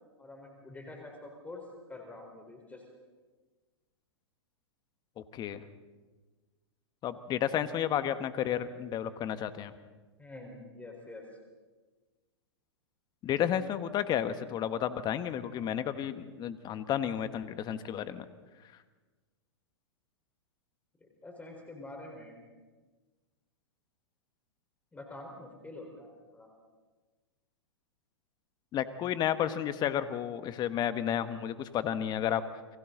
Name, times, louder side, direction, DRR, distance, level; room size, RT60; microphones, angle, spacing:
voice 1, 0.2-2.8 10.2-11.2 21.0-22.4 24.9-26.5, left 2 dB, 10° left, 2 dB, 4.3 m, -46 dB
voice 2, 5.3-5.6 7.0-9.7 13.2-18.2 28.7-32.4, left 10 dB, 30° left, 11 dB, 1.4 m, -32 dB
29.5 x 23.0 x 4.0 m, 1.3 s
hypercardioid pair, 105°, 14 cm